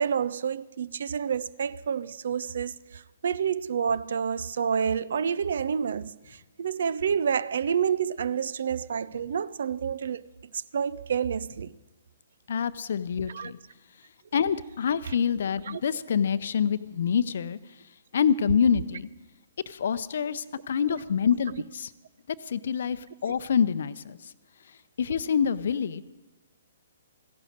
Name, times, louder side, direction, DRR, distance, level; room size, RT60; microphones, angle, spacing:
voice 1, 0.0-6.1 6.6-10.2 10.7-11.7 13.3-13.5 15.7-15.8, right 7 dB, 60° right, 0.4 m, -28 dB
voice 2, 12.5-13.6 14.3-17.6 18.1-19.1 19.7-21.9 22.3-24.2 25.0-26.0, left 7 dB, 60° left, 0.6 m, -26 dB
15.0 x 11.5 x 6.4 m
figure-of-eight pair, 125°, 0 cm